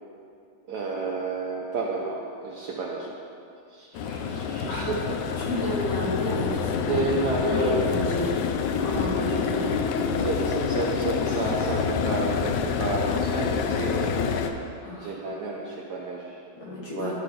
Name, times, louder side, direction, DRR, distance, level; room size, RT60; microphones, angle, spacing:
voice 1, 0.7-3.1 3.7-5.7 6.8-8.2 9.1-9.7 10.2-14.2 15.0-16.4 16.9-17.1, right 3 dB, 70° right, -2 dB, 1.0 m, -31 dB
sound 1, 3.9-14.5, left 6 dB, 85° left, 0.9 m, -27 dB
voice 2, 5.4-7.1 7.5-8.4 8.8-10.3 14.8-15.2 16.6-17.1, left 1 dB, 65° left, -5 dB, 2.0 m, -31 dB
11.5 x 3.9 x 4.9 m, 2.5 s
omnidirectional pair, 2.4 m